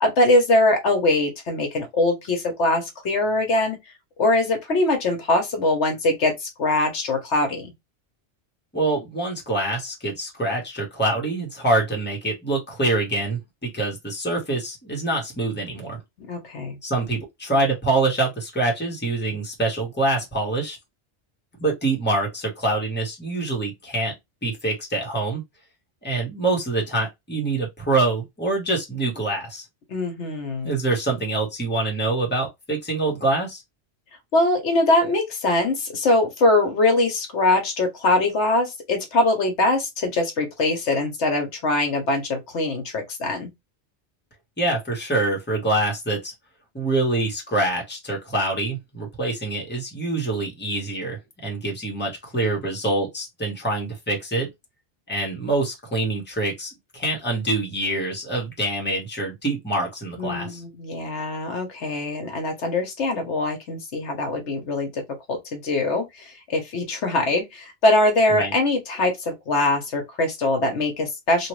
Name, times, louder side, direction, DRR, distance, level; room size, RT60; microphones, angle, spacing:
voice 1, 0.0-3.8 4.2-7.7 16.3-16.8 29.9-30.8 34.3-43.5 60.2-65.0 65.3-71.5, left 2 dB, 75° left, 1.2 m, -22 dB
voice 2, 8.7-16.0 16.8-20.8 21.6-24.1 24.4-25.4 26.0-29.6 30.6-33.6 44.6-46.3 46.7-54.5 55.1-60.6 68.3-68.5, right 2 dB, 10° left, 1.1 m, -25 dB
3.0 x 2.5 x 3.1 m
omnidirectional pair, 1.2 m